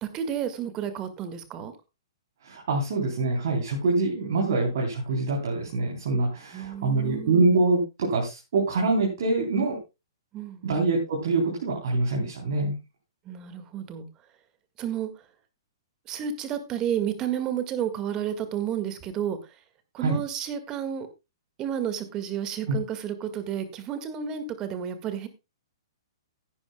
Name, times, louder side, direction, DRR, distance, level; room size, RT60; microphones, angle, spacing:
voice 1, 0.0-1.7 6.5-7.5 10.3-10.8 13.3-14.1 14.8-15.1 16.1-19.6 19.9-21.1 21.6-25.3, right 9 dB, 25° right, 10 dB, 1.8 m, -31 dB
voice 2, 2.4-9.8 10.6-12.8 20.0-20.2 22.7-22.8, right 3 dB, 55° right, -1 dB, 3.5 m, -25 dB
15.5 x 11.0 x 2.3 m, 0.25 s
figure-of-eight pair, 115°, 2 cm